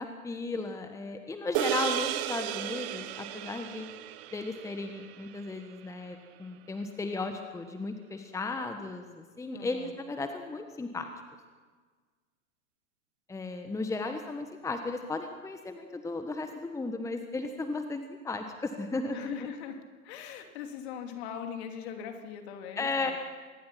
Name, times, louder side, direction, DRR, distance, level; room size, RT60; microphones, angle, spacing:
voice 1, 0.0-3.9 4.3-11.1 13.3-19.3 22.8-23.1, left 3 dB, 5° left, 7 dB, 1.4 m, -35 dB
sound 1, 1.5-6.1, right 14 dB, 40° right, 1.3 m, -35 dB
voice 2, 9.5-9.9 19.1-23.1, left 8 dB, 50° left, 5 dB, 3.1 m, -41 dB
25.0 x 20.5 x 5.9 m, 1.4 s
figure-of-eight pair, 100°, 42 cm